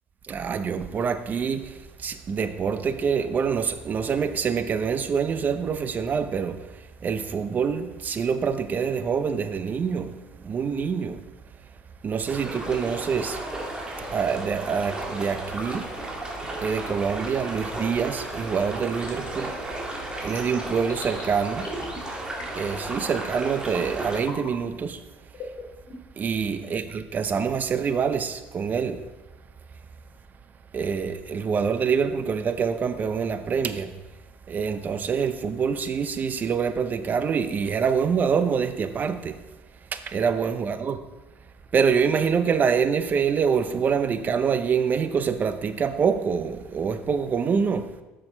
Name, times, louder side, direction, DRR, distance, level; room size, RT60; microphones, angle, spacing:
voice 1, 0.2-11.2 12.0-13.4 14.1-15.9 16.6-19.8 20.2-21.7 22.5-25.0 26.2-29.0 30.7-33.9 34.5-39.4 39.8-41.0 41.7-47.9, right 6 dB, 40° right, 0.7 m, -26 dB
sound 1, 12.3-24.2, right 1 dB, 20° right, 2.0 m, -34 dB
sound 2, 14.0-14.3 15.2-15.5 16.6-16.9 18.1-18.4 19.0-19.3 20.2-21.2 21.6-22.0 22.3-22.7 23.1-23.5 24.2-24.5 25.3-26.2, left 2 dB, 50° left, 3.0 m, -41 dB
7.1 x 6.4 x 4.4 m
supercardioid pair, 85°, 5 cm